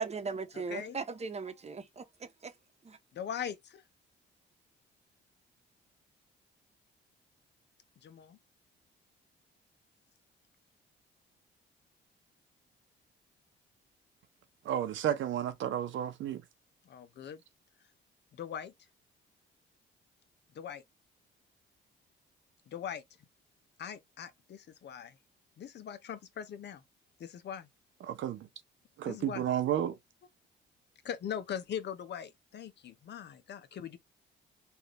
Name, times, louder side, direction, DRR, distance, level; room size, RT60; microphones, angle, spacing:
voice 1, 0.0-2.0 2.4-2.5 2.8-3.0, right 4 dB, 35° right, 0.9 m, -37 dB
voice 2, 0.5-1.0 3.1-3.8 8.0-8.4 16.9-17.4 18.3-18.7 20.5-20.8 22.7-23.0 23.8-25.2 25.6-26.8 27.2-27.7 29.1-29.4 31.0-34.0, left 8 dB, 60° left, 0.8 m, -41 dB
voice 3, 14.6-16.4 28.0-28.5 29.0-30.0, right 10 dB, 75° right, 0.9 m, -32 dB
3.3 x 2.6 x 2.9 m
cardioid pair, 90°, 20 cm